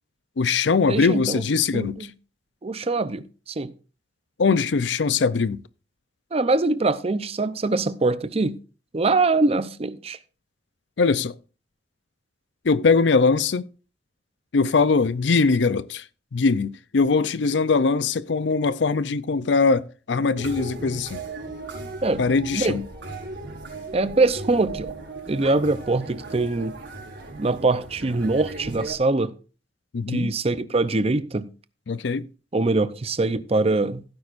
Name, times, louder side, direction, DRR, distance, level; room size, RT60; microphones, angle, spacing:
voice 1, 0.4-2.0 4.4-5.6 11.0-11.3 12.6-13.7 14.5-16.0 16.3-21.2 22.2-22.8 29.9-30.3 31.9-32.3, left 4 dB, 70° left, 0.5 m, -21 dB
voice 2, 0.9-1.4 1.7-2.1 2.6-3.7 6.3-8.6 8.9-10.2 22.0-22.2 22.5-22.8 23.9-24.9 25.3-26.7 27.4-29.3 30.1-31.5 32.5-34.0, right 3 dB, 35° right, 0.6 m, -23 dB
sound 1, 20.4-28.9, right 2 dB, 70° right, 5.1 m, -37 dB
16.0 x 9.4 x 2.5 m
head